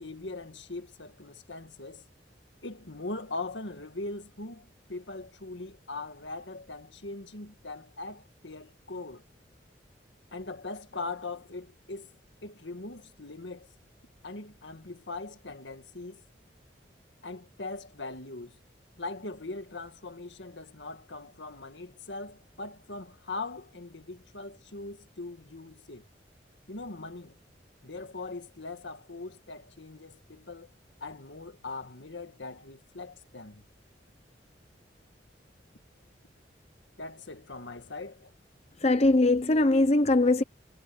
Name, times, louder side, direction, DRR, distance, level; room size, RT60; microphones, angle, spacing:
voice 1, 0.0-2.1 2.6-9.2 10.3-12.2 12.4-13.7 14.2-16.2 17.2-18.6 19.0-26.1 26.7-27.4 27.8-30.7 31.0-33.6 37.0-38.3, left 3 dB, 80° left, 1.9 m, -41 dB
voice 2, 38.8-40.4, left 2 dB, 35° left, 0.8 m, -21 dB
head